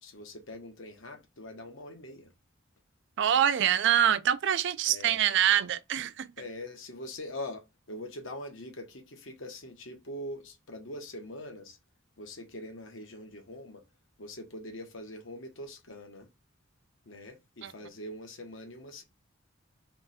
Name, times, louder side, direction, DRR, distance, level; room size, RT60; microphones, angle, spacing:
voice 1, 0.0-2.3 4.9-5.2 6.4-11.8 12.2-13.8 14.2-16.3 17.0-19.0, left 1 dB, 65° left, 1.2 m, -43 dB
voice 2, 3.2-6.3 17.6-17.7, right 10 dB, 60° right, 0.4 m, -25 dB
3.4 x 3.2 x 4.2 m
head